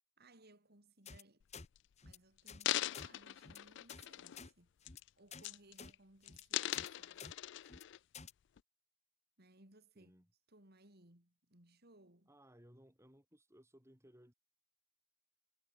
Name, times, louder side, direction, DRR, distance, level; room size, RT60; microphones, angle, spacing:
voice 1, 0.2-1.5 2.0-4.8 5.2-7.3 9.4-10.1 10.5-12.3, right 2 dB, 50° right, 4.3 m, -64 dB
sound 1, 1.1-1.2 1.5-1.7 2.0-2.2 2.5-2.6 2.9-3.1 3.4-3.6 3.9-4.1 4.3-4.5 4.8-5.0 5.3-5.5 5.8-5.9 6.2-6.4 6.7-6.9 7.2-7.3 7.6-7.8 8.1-8.3, left 5 dB, 35° left, 1.1 m, -51 dB
sound 2, 1.4-1.8 2.4-4.5 4.8-5.1 5.4-5.9 6.3-8.0 8.6-8.7, left 13 dB, 65° left, 0.3 m, -41 dB
voice 2, 9.9-10.3 12.3-14.3, equal, 15° right, 6.3 m, -63 dB
head